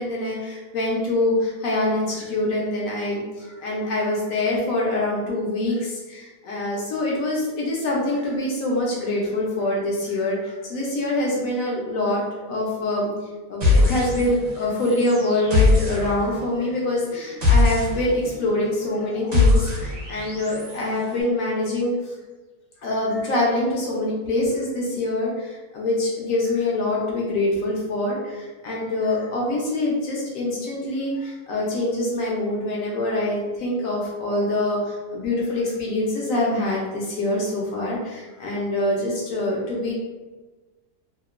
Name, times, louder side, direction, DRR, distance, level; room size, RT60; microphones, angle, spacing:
voice 1, 0.0-12.2 12.5-13.1 13.5-22.1 22.8-39.9, left 1 dB, 70° left, -3 dB, 0.9 m, -25 dB
sound 1, 13.6-14.5 14.8-20.8, left 3 dB, 45° right, 0.9 m, -22 dB
2.9 x 2.0 x 2.3 m, 1.2 s
omnidirectional pair, 1.7 m